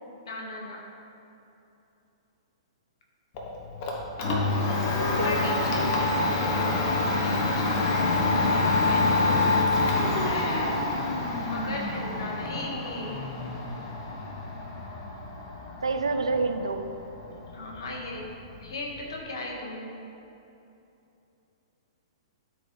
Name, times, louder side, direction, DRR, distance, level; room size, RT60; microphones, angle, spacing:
voice 1, 0.2-0.8 5.0-10.8 11.5-13.2 17.5-18.2 18.6-19.9, left 2 dB, 60° left, -1 dB, 1.5 m, -37 dB
Domestic sounds home sounds, 3.4-19.2, left 2 dB, 40° left, 1.1 m, -27 dB
voice 2, 4.8-5.5 5.7-6.3 15.8-16.9, right 3 dB, 75° right, 7 dB, 0.5 m, -30 dB
12.5 x 4.6 x 3.3 m, 2.9 s
figure-of-eight pair, 110°, 3 cm